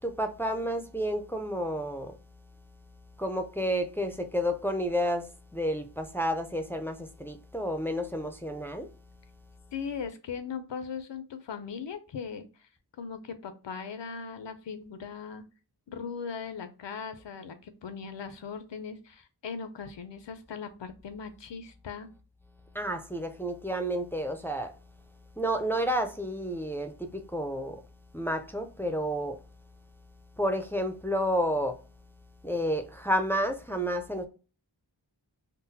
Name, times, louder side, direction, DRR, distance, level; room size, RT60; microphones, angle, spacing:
voice 1, 0.0-2.2 3.2-8.9 22.7-24.7 25.4-27.8 28.1-29.4 30.4-31.8 32.4-34.2, equal, 5° left, 0.4 m, -30 dB
voice 2, 9.7-12.7 13.0-15.5 15.9-22.1, left 6 dB, 80° left, 0.5 m, -39 dB
3.7 x 2.1 x 2.7 m
wide cardioid pair, 65°, 43 cm